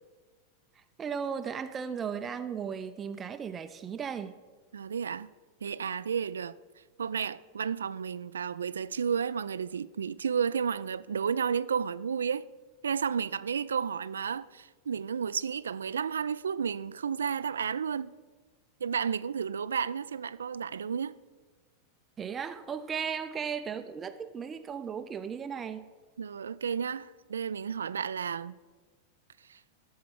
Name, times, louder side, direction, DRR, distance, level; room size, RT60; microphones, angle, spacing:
voice 1, 0.8-4.4 22.2-25.8, right 7 dB, 20° right, 0.5 m, -36 dB
voice 2, 4.7-5.3 5.6-6.5 7.0-12.5 12.8-18.1 18.8-21.2 26.2-28.5 29.5-29.6, right 7 dB, 70° right, 0.3 m, -32 dB
14.0 x 4.7 x 8.7 m
figure-of-eight pair, 90°, 0 cm